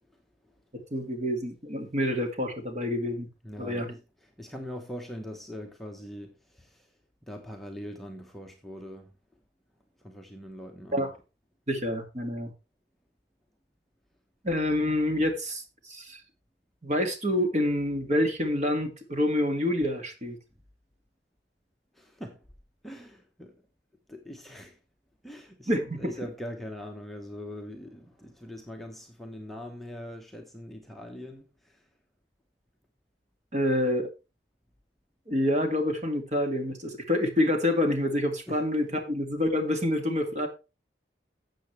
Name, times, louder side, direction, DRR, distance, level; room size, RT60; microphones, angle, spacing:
voice 1, 0.7-3.3 3.6-3.9 10.9-11.1 11.7-12.5 14.4-16.2 16.8-20.4 25.7-26.1 33.5-34.1 35.3-40.5, left 1 dB, 40° right, 2.1 m, -27 dB
voice 2, 3.4-6.9 7.3-9.1 10.0-11.1 21.9-22.4 22.8-23.6 24.1-24.8 25.2-31.9 38.5-38.6 38.9-39.1, equal, ahead, 1.1 m, -42 dB
13.0 x 7.8 x 3.3 m
head